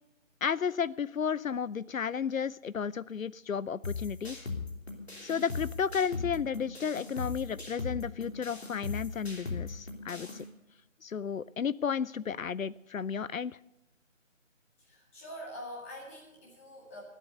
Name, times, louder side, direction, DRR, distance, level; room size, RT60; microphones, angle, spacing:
voice 1, 0.4-4.5 5.2-10.4 11.0-13.6, left 7 dB, 80° left, 20 dB, 0.5 m, -33 dB
sound 1, 3.8-10.4, left 4 dB, 50° left, 3.3 m, -39 dB
voice 2, 14.8-17.0, equal, 10° left, -3 dB, 2.2 m, -45 dB
21.0 x 8.4 x 6.7 m, 0.91 s
figure-of-eight pair, 160°, 40 cm